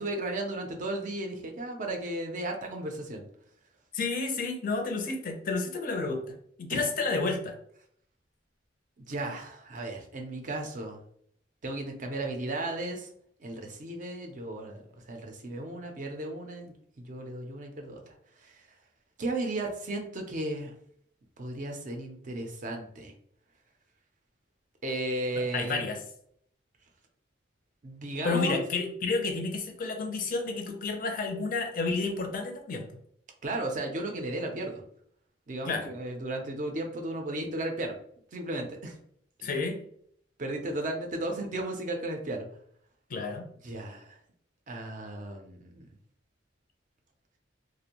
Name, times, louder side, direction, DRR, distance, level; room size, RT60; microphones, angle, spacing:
voice 1, 0.0-3.2 6.7-7.0 9.0-11.0 11.6-13.1 13.4-18.1 18.4-18.6 19.2-20.7 21.4-23.1 24.8-25.9 27.8-28.6 33.4-34.8 35.5-38.0 38.3-38.9 39.4-39.5 40.4-42.5 43.6-44.2 44.7-45.9, right 2 dB, 45° right, 3 dB, 0.4 m, -35 dB
voice 2, 3.9-7.6 25.5-26.0 28.2-32.9 35.6-35.9 39.4-39.8 43.1-43.4, left 3 dB, 45° left, 4 dB, 0.4 m, -30 dB
2.5 x 2.0 x 2.8 m, 0.65 s
head